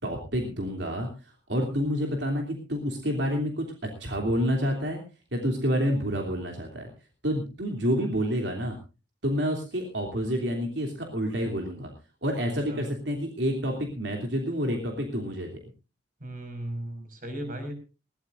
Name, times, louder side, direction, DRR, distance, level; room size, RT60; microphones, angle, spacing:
voice 1, 0.0-5.0 5.3-6.9 7.2-8.8 9.2-11.9 12.2-15.6, equal, 80° right, 2 dB, 3.0 m, -28 dB
voice 2, 16.2-17.7, right 1 dB, 50° right, 7 dB, 5.5 m, -36 dB
21.0 x 17.5 x 2.6 m, 0.31 s
head